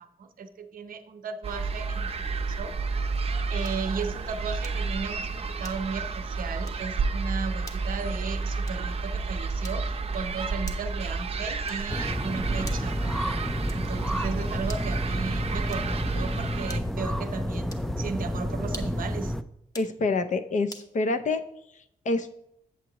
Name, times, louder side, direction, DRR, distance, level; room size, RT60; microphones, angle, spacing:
voice 1, 0.0-2.1 2.5-2.7 3.5-13.3 13.7-19.3, right 5 dB, 80° right, 7 dB, 0.7 m, -35 dB
sound 1, 1.4-16.8, right 4 dB, 45° right, 0.6 m, -31 dB
sound 2, 3.6-3.9 4.6-5.0 5.6-6.1 6.6-6.9 7.6-7.9 8.6-9.0 9.6-10.0 10.6-11.0 11.6-12.0 12.6-13.0 13.7-14.0 14.6-15.0 15.6-16.1 16.7-17.1 17.7-18.0 18.6-19.1 19.6-20.0 20.7-20.9, left 1 dB, 25° left, 0.9 m, -46 dB
sound 3, 11.9-19.4, equal, 5° left, 0.3 m, -30 dB
voice 2, 19.7-21.4 21.7-22.4, left 3 dB, 60° left, 7 dB, 0.6 m, -27 dB
8.2 x 7.3 x 2.9 m, 0.77 s
wide cardioid pair, 105°, 14 cm